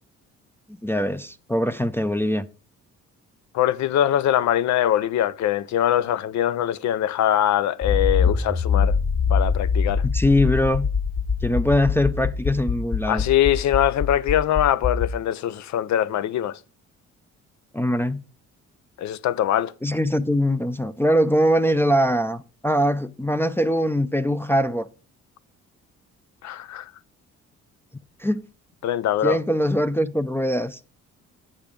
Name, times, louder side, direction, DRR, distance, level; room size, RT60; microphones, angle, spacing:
voice 1, 0.8-2.4 10.0-10.9 11.4-13.2 17.7-18.2 19.8-24.9 28.2-28.5 29.2-30.8, equal, 10° left, 0.5 m, -22 dB
voice 2, 3.5-9.0 9.3-10.1 13.1-16.6 19.0-19.7 26.4-26.9 28.8-29.4, left 11 dB, 70° left, 0.6 m, -22 dB
Accelerating revving vroom, 7.8-15.1, left 5 dB, 30° left, 1.5 m, -23 dB
8.8 x 5.9 x 5.0 m
cardioid pair, 90°, 30 cm